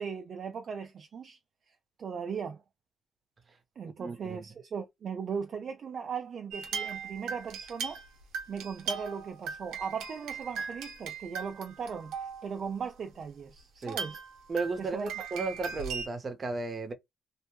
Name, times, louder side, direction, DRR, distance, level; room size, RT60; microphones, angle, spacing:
voice 1, 0.0-1.4 2.0-2.6 3.8-8.0 8.5-12.1 12.4-14.2 14.8-15.3, right 6 dB, 55° right, 0.4 m, -38 dB
voice 2, 3.8-4.4 13.8-14.0 14.5-16.9, right 3 dB, 35° right, 0.8 m, -34 dB
sound 1, 6.5-12.5 13.2-13.3 13.8-16.1, right 5 dB, 85° right, 0.7 m, -39 dB
2.6 x 2.1 x 3.0 m
cardioid pair, 90°, 0 cm